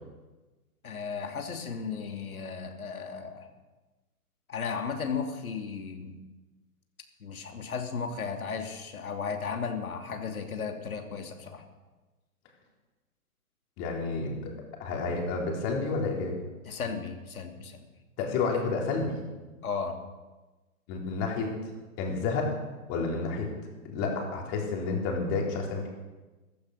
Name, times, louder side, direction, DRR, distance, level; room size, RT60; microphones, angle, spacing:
voice 1, 0.8-3.5 4.5-6.2 7.2-11.6 16.7-17.8 19.6-20.0, left 5 dB, 70° left, 4 dB, 2.6 m, -35 dB
voice 2, 13.8-14.5 14.8-16.4 18.2-19.2 20.9-21.7 22.0-22.6 22.9-23.5 23.8-25.9, left 4 dB, 25° left, 0 dB, 3.7 m, -30 dB
15.0 x 14.0 x 6.5 m, 1.2 s
hypercardioid pair, 140°, 44 cm